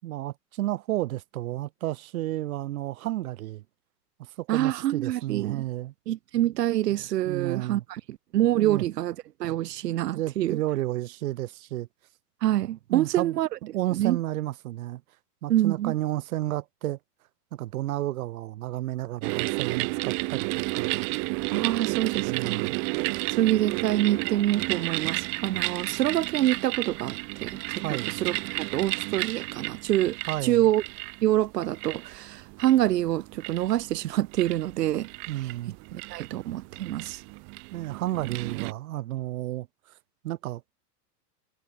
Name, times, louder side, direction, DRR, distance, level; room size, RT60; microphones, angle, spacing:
voice 1, 0.0-3.6 4.2-5.9 7.2-7.8 8.6-8.8 10.0-11.9 12.9-13.4 13.7-15.0 15.4-17.0 17.5-20.5 20.7-21.1 22.2-22.8 27.8-28.2 30.3-30.7 35.3-35.7 37.7-39.7 40.2-40.6, right 15 dB, 60° right, 6.1 m, -32 dB
voice 2, 4.5-5.6 6.1-10.6 12.4-13.5 13.9-14.2 15.5-15.9 21.5-22.7 23.3-30.8 31.2-35.1 35.9-37.2, right 13 dB, 90° right, 2.0 m, -26 dB
sound 1, 19.2-38.7, right 34 dB, 25° right, 0.9 m, -32 dB
supercardioid pair, 170°, 47 cm